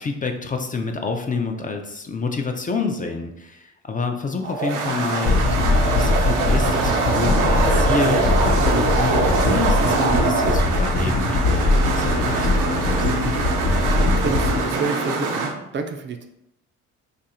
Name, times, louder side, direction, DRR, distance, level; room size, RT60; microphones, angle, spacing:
voice 1, 0.0-8.4 8.9-13.1, left 4 dB, 30° left, 5 dB, 0.4 m, -28 dB
sound 1, 4.4-15.5, right 4 dB, 85° right, 0.6 m, -23 dB
sound 2, 5.3-14.6, left 2 dB, 70° left, 0.8 m, -21 dB
voice 2, 14.0-16.3, right 4 dB, 40° right, 6 dB, 0.4 m, -29 dB
2.8 x 2.5 x 4.2 m, 0.84 s
cardioid pair, 90°, 30 cm